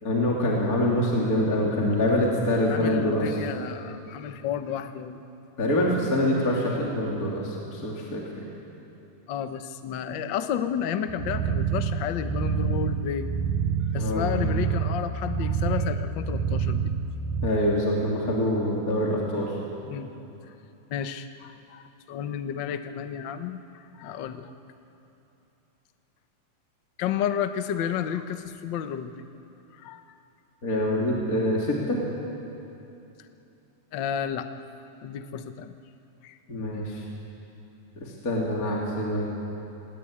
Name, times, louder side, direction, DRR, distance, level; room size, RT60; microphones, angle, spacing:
voice 1, 0.0-3.3 5.6-8.4 13.9-14.3 17.4-19.5 30.6-32.0 36.5-37.0 38.0-39.3, left 1 dB, 25° left, -3 dB, 3.3 m, -25 dB
voice 2, 2.1-5.2 9.3-13.3 13.9-16.9 19.9-20.1 20.9-24.5 27.0-29.2 29.7-30.0 33.9-34.5 35.0-35.8 36.2-36.4, left 8 dB, 90° left, 9 dB, 1.0 m, -31 dB
sound 1, 11.1-17.5, right 6 dB, 75° right, 2.3 m, -27 dB
27.0 x 21.0 x 8.7 m, 3.0 s
omnidirectional pair, 3.6 m